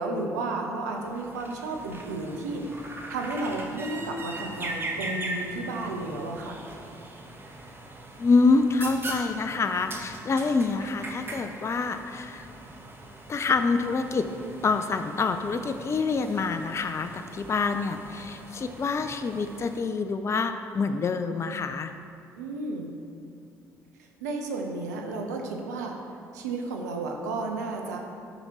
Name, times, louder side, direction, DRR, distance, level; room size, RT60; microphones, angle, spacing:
voice 1, 0.0-2.7 3.1-6.6 22.3-22.9 24.2-26.0 26.3-28.0, right 2 dB, 80° right, 2 dB, 0.7 m, -32 dB
sound 1, 0.9-19.8, right 1 dB, 25° right, 1.1 m, -40 dB
voice 2, 8.2-12.5 13.3-14.3 14.6-21.9, left 4 dB, 30° left, 8 dB, 0.4 m, -26 dB
10.5 x 5.6 x 3.0 m, 2.5 s
figure-of-eight pair, 45°, 9 cm